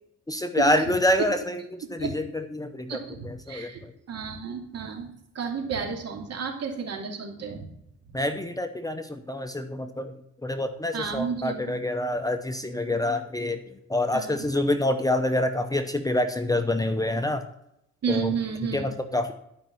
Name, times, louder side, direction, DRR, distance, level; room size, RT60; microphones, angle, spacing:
voice 1, 0.3-3.0 3.2-3.9 8.1-10.2 10.4-13.6 13.9-17.4 18.1-18.3 18.7-19.3, left 1 dB, 10° left, 7 dB, 0.8 m, -27 dB
voice 2, 2.9-3.8 4.1-7.7 10.9-11.7 14.1-14.5 18.0-18.9, right 6 dB, 55° right, 1 dB, 2.7 m, -32 dB
12.0 x 5.5 x 5.9 m, 0.79 s
cardioid pair, 90°, 30 cm